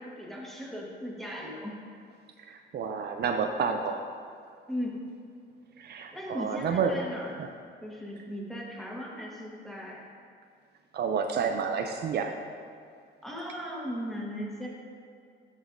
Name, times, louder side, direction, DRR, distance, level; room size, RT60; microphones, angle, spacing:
voice 1, 0.0-1.8 4.7-4.9 6.1-7.4 7.8-10.0 13.2-14.7, equal, ahead, -3 dB, 1.5 m, -37 dB
voice 2, 2.4-4.1 5.8-7.0 7.4-7.5 10.9-12.3, right 6 dB, 55° right, 5 dB, 0.4 m, -30 dB
11.0 x 5.5 x 2.6 m, 2.2 s
cardioid pair, 90°, 20 cm